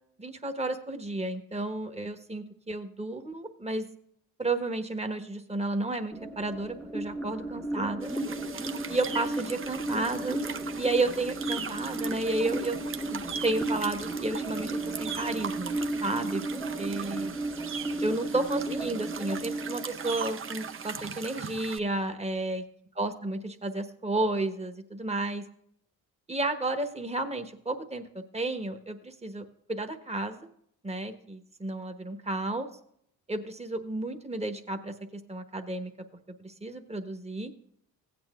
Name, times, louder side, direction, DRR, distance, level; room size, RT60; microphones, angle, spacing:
voice 1, 0.2-3.8 4.4-8.1 8.9-10.4 10.8-12.8 13.1-16.4 16.8-17.3 18.0-22.6 23.0-25.4 26.3-30.5 30.8-32.7 33.3-35.9 36.4-37.5, right 2 dB, 15° right, 7 dB, 1.1 m, -32 dB
sound 1, 6.1-21.1, right 2 dB, ahead, 0.9 m, -34 dB
sound 2, 8.0-21.8, right 7 dB, 35° right, 0.6 m, -40 dB
16.5 x 8.8 x 2.4 m, 0.69 s
cardioid pair, 80°, 37 cm